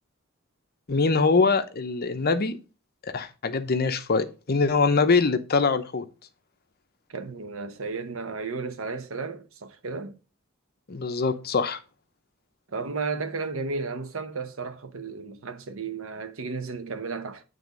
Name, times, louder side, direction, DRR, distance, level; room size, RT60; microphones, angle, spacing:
voice 1, 0.9-2.6 3.0-6.0 10.9-11.8, left 4 dB, 50° left, 0.8 m, -23 dB
voice 2, 7.1-10.2 12.7-17.4, right 4 dB, 75° right, 0.9 m, -33 dB
9.3 x 3.5 x 5.2 m
head